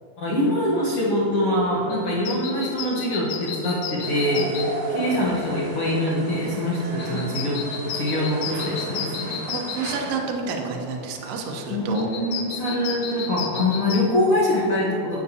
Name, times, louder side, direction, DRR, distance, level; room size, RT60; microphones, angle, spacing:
voice 1, 0.2-7.6 7.9-9.3 11.7-15.2, left 1 dB, 70° left, -7 dB, 1.3 m, -24 dB
sound 1, 1.5-14.0, left 6 dB, 85° left, 1.6 m, -35 dB
sound 2, 4.0-10.2, right 2 dB, 65° right, 1.8 m, -34 dB
voice 2, 9.5-12.1, right 4 dB, 85° right, 1 dB, 1.3 m, -30 dB
12.0 x 7.5 x 2.8 m, 2.9 s
omnidirectional pair, 4.1 m